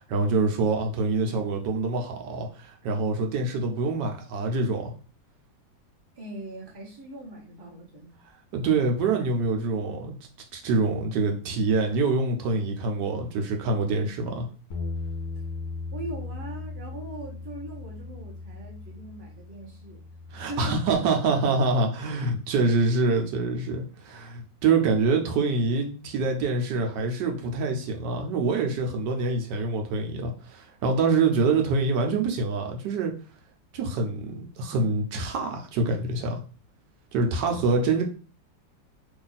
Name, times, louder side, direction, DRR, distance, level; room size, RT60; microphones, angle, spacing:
voice 1, 0.0-4.9 8.5-10.2 10.5-14.5 20.3-33.1 33.7-36.4 37.1-38.0, right 3 dB, 70° right, 3 dB, 1.2 m, -25 dB
voice 2, 6.1-8.2 15.3-15.4 15.9-20.0 20.3-20.8 25.1-25.3, right 1 dB, 25° right, -3 dB, 0.5 m, -40 dB
Bass guitar, 14.7-21.0, left 3 dB, 70° left, 0.6 m, -37 dB
3.1 x 2.5 x 3.9 m, 0.37 s
omnidirectional pair, 2.0 m